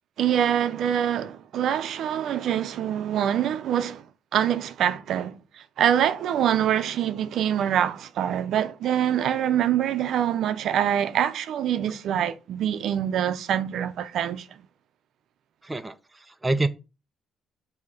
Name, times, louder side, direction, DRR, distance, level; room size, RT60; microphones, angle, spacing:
voice 1, 0.2-4.1 4.3-5.4 5.8-14.5, right 10 dB, 55° right, 0.6 m, -25 dB
voice 2, 15.6-16.7, right 2 dB, 10° right, 0.4 m, -27 dB
7.2 x 2.8 x 5.9 m
cardioid pair, 165°, 0 cm